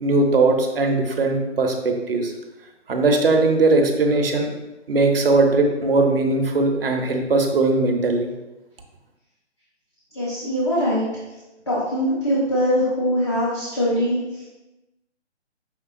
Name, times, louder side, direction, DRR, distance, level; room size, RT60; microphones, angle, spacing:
voice 1, 0.0-2.3 2.9-4.5 4.9-8.3, right 3 dB, 55° right, 3 dB, 0.7 m, -19 dB
voice 2, 10.1-11.1 11.7-14.4, equal, 25° left, -8 dB, 0.7 m, -22 dB
5.9 x 3.3 x 2.5 m, 1.0 s
figure-of-eight pair, 155°, 36 cm